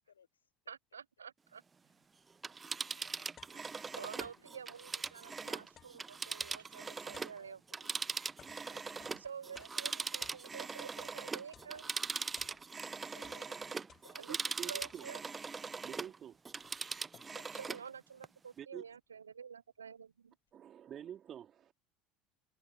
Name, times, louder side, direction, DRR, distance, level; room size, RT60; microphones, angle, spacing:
voice 1, 0.0-0.5 1.8-2.0 3.9-4.4 4.7-4.9 7.4-8.2 8.6-9.3 13.1-14.3 14.7-14.9 17.3-17.5, left 7 dB, 80° left, 4.7 m, -63 dB
voice 2, 0.7-1.6 3.0-3.1 3.5-3.6 4.0-7.6 9.1-11.9 14.2-14.3 14.7-15.2 17.5-20.4, right 7 dB, 80° right, 0.6 m, -49 dB
Telephone, 2.3-7.4 7.7-16.2 16.5-17.9 18.2-18.3, right 4 dB, 20° right, 0.8 m, -41 dB
sound 1, 2.9-4.6 4.9-11.2 11.5-12.9 13.2-14.4 14.8-15.3 16.0-16.1 16.3-17.6, left 9 dB, 35° left, 1.2 m, -62 dB
voice 3, 14.3-15.1 15.8-16.4 16.8-16.9 18.6-18.8 20.5-21.7, right 9 dB, 40° right, 2.9 m, -47 dB
figure-of-eight pair, 70°, 0 cm